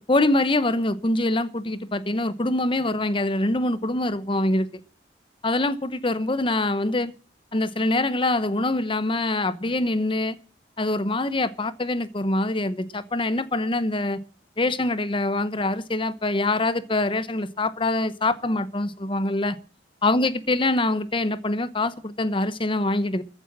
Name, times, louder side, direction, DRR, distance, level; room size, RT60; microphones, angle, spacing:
voice 1, 0.1-4.7 5.4-7.1 7.5-10.4 10.8-14.2 14.6-19.6 20.0-23.2, left 2 dB, 30° left, 15 dB, 0.8 m, -24 dB
14.5 x 8.0 x 7.4 m, 0.37 s
head